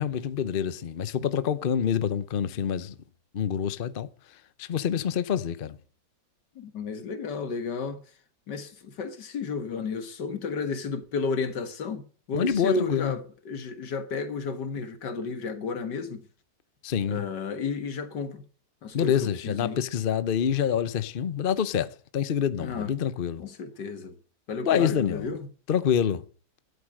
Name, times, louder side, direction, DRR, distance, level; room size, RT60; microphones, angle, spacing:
voice 1, 0.0-2.9 3.3-4.1 4.6-5.8 12.3-13.2 16.8-17.2 18.9-23.4 24.7-25.3 25.7-26.2, left 8 dB, 45° left, 0.7 m, -26 dB
voice 2, 6.6-8.0 8.5-12.0 12.3-16.2 17.1-18.4 18.8-19.1 19.4-19.8 22.6-22.9 23.4-24.2 24.5-25.5, left 4 dB, 80° left, 2.1 m, -32 dB
11.5 x 8.7 x 7.7 m
omnidirectional pair, 1.8 m